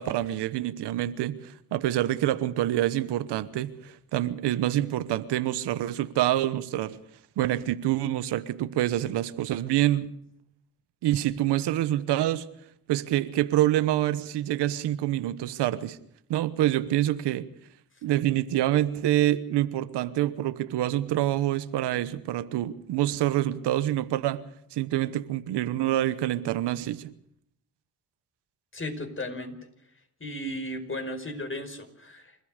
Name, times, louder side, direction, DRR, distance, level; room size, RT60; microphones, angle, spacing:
voice 1, 0.0-7.0 7.4-10.1 11.0-12.5 12.9-16.0 16.3-17.5 18.0-24.4 24.7-27.1, right 13 dB, 85° right, 14 dB, 1.2 m, -26 dB
voice 2, 28.7-29.6 30.2-32.4, left 1 dB, 30° left, 7 dB, 5.3 m, -35 dB
28.5 x 14.0 x 6.6 m, 0.70 s
supercardioid pair, 60°, 40 cm